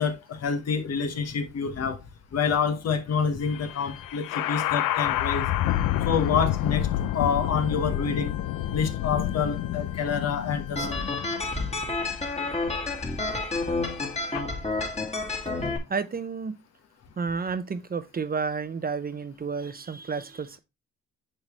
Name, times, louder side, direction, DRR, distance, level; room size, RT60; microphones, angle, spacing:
voice 1, 0.0-2.0 2.3-5.5 6.0-6.9 7.1-8.3 8.7-11.0, left 6 dB, 55° left, 1.3 m, -27 dB
sound 1, 3.4-14.4, left 13 dB, 85° left, 0.5 m, -29 dB
sound 2, 10.8-15.8, left 3 dB, 20° left, 1.9 m, -30 dB
voice 2, 15.9-16.6 17.2-20.6, right 5 dB, 30° right, 0.8 m, -31 dB
9.8 x 3.8 x 3.0 m
cardioid pair, 90°, 30 cm